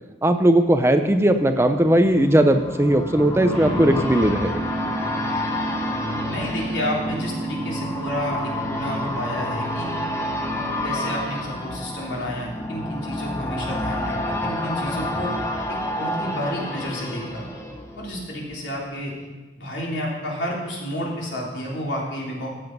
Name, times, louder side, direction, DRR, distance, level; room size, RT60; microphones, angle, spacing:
voice 1, 0.2-4.5, right 1 dB, 15° right, 8 dB, 0.5 m, -18 dB
sound 1, 0.8-18.6 18.9-19.0, left 1 dB, 15° left, 0.9 m, -29 dB
sound 2, 3.5-11.8, right 2 dB, 35° right, 4.5 m, -32 dB
voice 2, 6.2-9.9 10.8-15.3 16.0-17.4 18.0-19.1 19.6-22.5, equal, 85° left, -3 dB, 3.4 m, -30 dB
14.0 x 7.7 x 5.2 m, 1.2 s
head